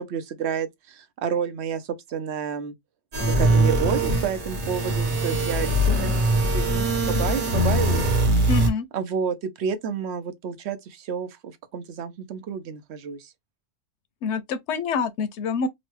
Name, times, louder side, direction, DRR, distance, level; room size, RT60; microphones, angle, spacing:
voice 1, 0.0-2.7 3.2-8.3 8.9-13.3, right 7 dB, 75° right, 0.9 m, -30 dB
sound 1, 3.1-8.7, right 1 dB, 50° right, 1.0 m, -22 dB
voice 2, 8.5-8.9 14.2-15.7, left 5 dB, 90° left, 0.9 m, -26 dB
3.0 x 2.1 x 3.1 m
omnidirectional pair, 1.2 m